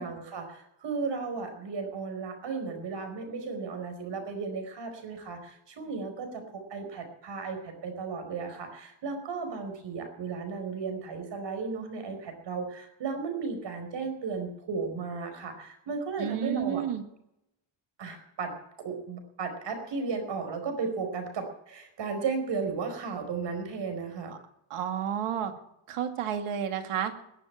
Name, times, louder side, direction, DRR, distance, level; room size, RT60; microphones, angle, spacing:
voice 1, 0.0-16.8 18.0-24.4, right 4 dB, 55° right, 6 dB, 4.8 m, -35 dB
voice 2, 16.2-17.0 24.3-24.4 24.7-25.5 25.9-27.1, right 9 dB, 85° right, 6 dB, 2.3 m, -31 dB
21.0 x 7.5 x 8.9 m, 0.81 s
cardioid pair, 125°, 50 cm